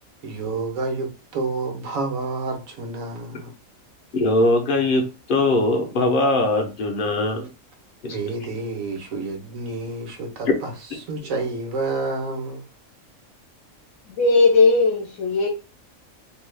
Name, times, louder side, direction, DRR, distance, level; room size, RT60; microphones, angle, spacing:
voice 1, 0.2-3.5 8.1-12.6, right 3 dB, 70° right, 1.3 m, -29 dB
voice 2, 4.1-7.5 8.0-8.2, left 2 dB, 55° left, 0.6 m, -21 dB
voice 3, 14.1-15.5, left 3 dB, 75° left, 1.0 m, -17 dB
2.9 x 2.3 x 3.2 m
omnidirectional pair, 1.5 m